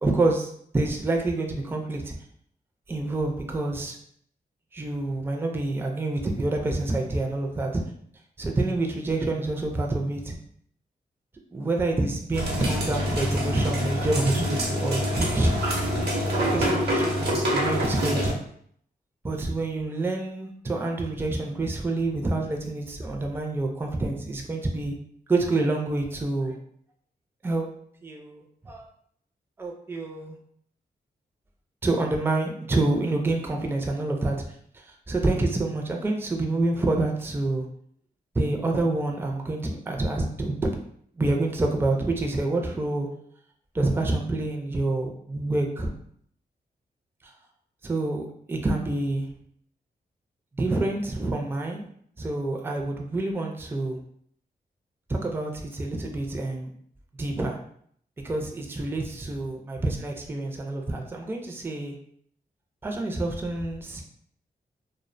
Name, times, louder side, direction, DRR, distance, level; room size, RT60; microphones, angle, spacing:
voice 1, 0.0-2.1 2.9-4.0 4.7-7.8 8.4-10.4 11.5-15.5 16.5-18.4 19.2-25.0 25.3-26.6 27.4-27.7 28.0-28.9 29.6-30.4 31.8-34.4 34.7-37.7 38.3-40.7 41.2-43.1 43.7-45.9 47.2-47.3 47.8-48.2 48.5-49.3 50.6-51.9 52.2-54.0 55.1-56.7 57.2-57.6 58.2-62.0 62.8-64.0, right 2 dB, 15° right, 1 dB, 0.3 m, -27 dB
sound 1, 12.3-18.3, equal, 75° right, 0.7 m, -26 dB
2.4 x 2.1 x 2.5 m, 0.65 s
cardioid pair, 80°, 17 cm